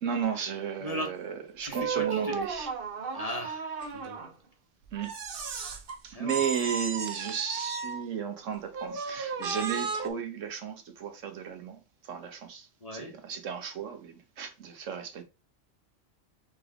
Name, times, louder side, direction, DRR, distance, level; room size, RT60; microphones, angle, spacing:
voice 1, 0.0-2.7 4.9-5.2 6.0-15.2, right 8 dB, 85° right, 1.3 m, -34 dB
voice 2, 1.6-2.3 3.1-4.2 6.1-6.4 12.8-13.2, equal, 35° left, 1.0 m, -37 dB
sound 1, 1.7-4.3 5.0-6.0 6.3-8.0 8.7-10.1, right 5 dB, 55° right, 0.8 m, -34 dB
4.0 x 3.4 x 3.6 m
omnidirectional pair, 1.3 m